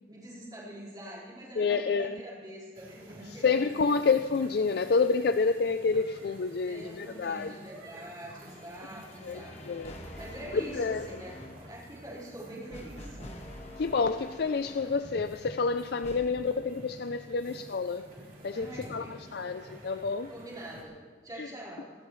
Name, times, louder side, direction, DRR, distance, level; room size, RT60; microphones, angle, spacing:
voice 1, 0.1-4.0 6.7-11.3 11.7-13.2 18.5-19.2 20.3-21.0 21.2-21.9, right 1 dB, 20° right, -6 dB, 4.6 m, -45 dB
voice 2, 1.6-2.2 3.4-7.5 9.2-10.0 10.7-11.1 13.8-18.1 18.4-20.3 21.4-21.5, left 4 dB, 55° left, 10 dB, 0.4 m, -29 dB
sound 1, 2.7-20.8, right 1 dB, 45° right, 3.4 m, -50 dB
sound 2, 8.4-15.1 16.0-16.3, left 1 dB, 35° left, 1.3 m, -47 dB
26.5 x 12.5 x 3.2 m, 1.5 s
head